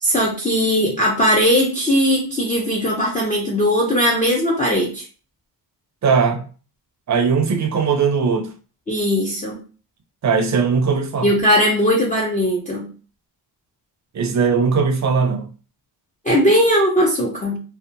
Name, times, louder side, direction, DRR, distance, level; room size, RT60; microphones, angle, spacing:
voice 1, 0.0-5.0 8.9-9.6 11.2-12.9 16.2-17.6, equal, 20° left, 0.4 m, -18 dB
voice 2, 6.0-6.4 7.1-8.5 10.2-11.3 14.1-15.5, right 5 dB, 40° right, 0.5 m, -19 dB
2.7 x 2.2 x 2.5 m
wide cardioid pair, 155°, 43 cm